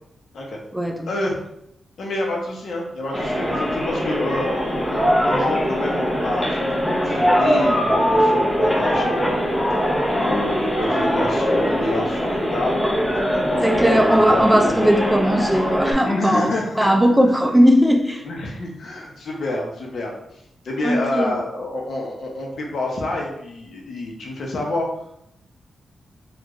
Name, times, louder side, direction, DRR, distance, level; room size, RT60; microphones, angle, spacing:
voice 1, 0.7-1.1 13.6-16.5 16.8-18.2 20.8-21.3, equal, 5° right, 3 dB, 0.4 m, -18 dB
voice 2, 2.0-12.8 13.1-14.9 16.0-16.8 18.2-20.1 20.6-24.9, left 2 dB, 70° left, 0 dB, 0.8 m, -28 dB
sound 1, 3.1-15.9, equal, 10° left, 0.7 m, -21 dB
3.6 x 2.4 x 3.0 m, 0.78 s
wide cardioid pair, 115°, 0 cm